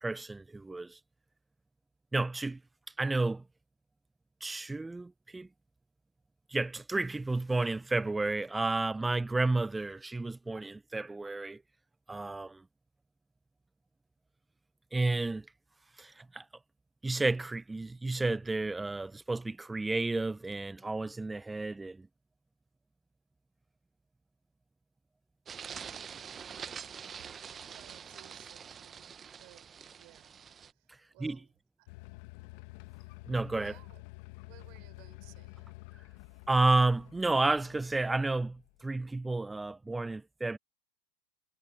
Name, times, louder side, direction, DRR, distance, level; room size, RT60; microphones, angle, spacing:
voice 1, 0.0-1.0 2.1-2.6 3.0-3.4 4.4-5.5 6.5-11.6 12.1-12.6 14.9-15.5 16.0-16.4 17.0-22.1 31.2-31.4 33.3-33.7 36.5-40.6, right 2 dB, 10° right, 0.8 m, -31 dB
sound 1, 25.5-30.7, right 7 dB, 25° right, 1.1 m, -45 dB
voice 2, 27.7-30.3 30.7-30.9 31.1-31.5 31.8-31.9 33.6-34.0 34.4-35.7, right 30 dB, 55° right, 5.6 m, -59 dB
sound 2, 31.9-38.8, left 24 dB, 60° left, 1.9 m, -50 dB
hypercardioid pair, 95°, 0 cm